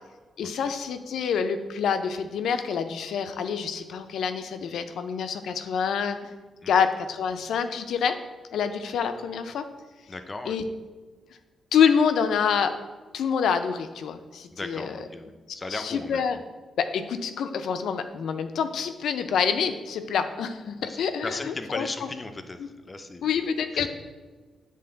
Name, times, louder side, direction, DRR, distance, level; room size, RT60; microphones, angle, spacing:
voice 1, 0.4-6.3 6.7-8.2 8.5-9.7 10.5-10.6 11.7-12.7 13.1-15.0 15.7-16.4 16.8-22.1 23.2-23.9, left 7 dB, 80° left, 9 dB, 0.4 m, -27 dB
voice 2, 10.1-10.6 14.5-16.2 20.8-23.3 23.7-23.9, left 2 dB, 25° left, 8 dB, 0.5 m, -37 dB
7.8 x 3.2 x 3.8 m, 1.3 s
cardioid pair, 105°, 0 cm